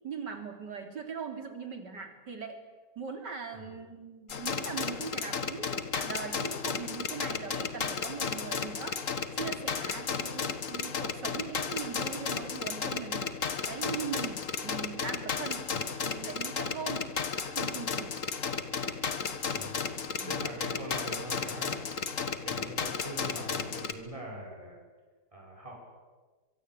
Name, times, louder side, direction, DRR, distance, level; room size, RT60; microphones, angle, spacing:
voice 1, 0.0-2.6 3.0-9.0 9.3-13.3 13.6-15.7 16.0-17.1 17.4-18.2 18.8-19.4 20.2-20.3, right 6 dB, 85° right, 5 dB, 3.9 m, -40 dB
sound 1, 4.3-23.9, left 5 dB, 50° left, 1.8 m, -34 dB
voice 2, 20.3-21.8 22.4-24.8 25.3-25.8, right 1 dB, 20° right, -1 dB, 5.9 m, -42 dB
23.5 x 23.5 x 9.0 m, 1.4 s
omnidirectional pair, 1.8 m